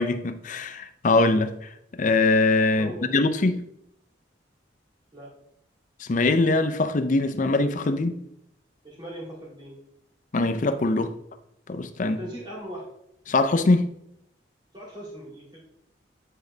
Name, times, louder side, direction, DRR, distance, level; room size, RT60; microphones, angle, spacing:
voice 1, 0.0-1.5 1.9-3.6 6.0-8.2 10.3-11.1 11.7-12.2 13.3-13.9, left 2 dB, 45° left, 0.5 m, -22 dB
voice 2, 2.8-3.2 5.1-5.3 8.8-9.8 12.0-12.9 14.7-15.6, right 1 dB, 25° right, 2.4 m, -39 dB
9.4 x 3.8 x 3.2 m
head